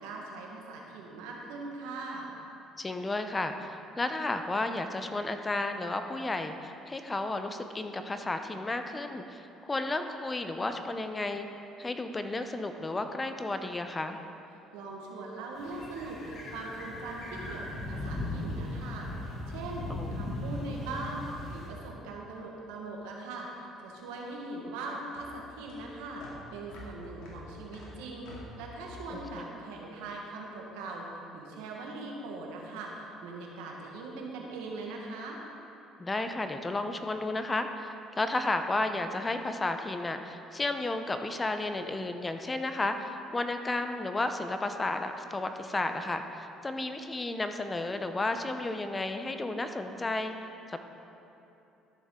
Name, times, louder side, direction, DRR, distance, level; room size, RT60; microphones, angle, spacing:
voice 1, 0.0-2.3 14.7-26.2 26.5-35.4, right 3 dB, 90° right, -1 dB, 1.5 m, -41 dB
voice 2, 2.8-11.5 11.8-14.2 19.9-20.2 29.1-29.5 36.0-50.3 50.7-50.8, left 2 dB, 20° left, 7 dB, 0.7 m, -33 dB
sound 1, 15.6-21.7, left 1 dB, 55° left, 2.2 m, -38 dB
sound 2, 23.8-30.3, left 2 dB, 80° left, 2.3 m, -48 dB
13.0 x 7.1 x 3.8 m, 2.9 s
supercardioid pair, 80°, 0 cm